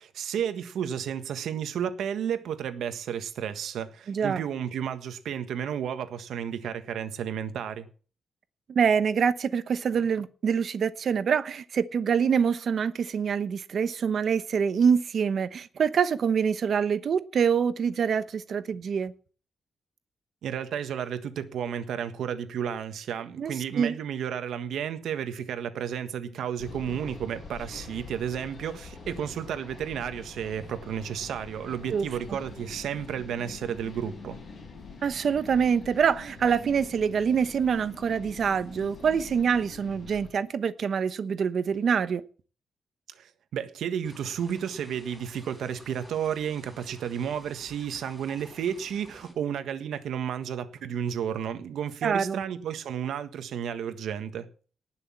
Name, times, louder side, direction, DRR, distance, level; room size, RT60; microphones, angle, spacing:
voice 1, 0.0-7.9 20.4-34.4 43.1-54.5, right 8 dB, 90° right, 1.5 m, -32 dB
voice 2, 4.1-4.4 8.7-19.1 23.4-24.0 31.9-32.1 35.0-42.2 52.0-52.4, right 7 dB, 50° right, 1.0 m, -25 dB
sound 1, 26.6-40.3, left 4 dB, 45° left, 6.2 m, -45 dB
sound 2, 44.0-49.3, equal, ahead, 4.9 m, -52 dB
19.0 x 6.4 x 7.3 m
wide cardioid pair, 175°, 0 cm